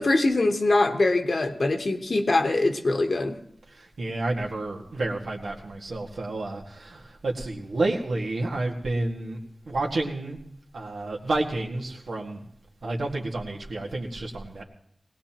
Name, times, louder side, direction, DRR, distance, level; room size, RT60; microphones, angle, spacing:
voice 1, 0.0-3.4, left 2 dB, 60° left, 5 dB, 1.1 m, -23 dB
voice 2, 3.7-9.4 9.7-10.4 10.7-12.5 12.8-14.6, right 2 dB, 85° right, 0 dB, 1.9 m, -30 dB
20.0 x 17.5 x 3.0 m, 0.71 s
wide cardioid pair, 80°, 0 cm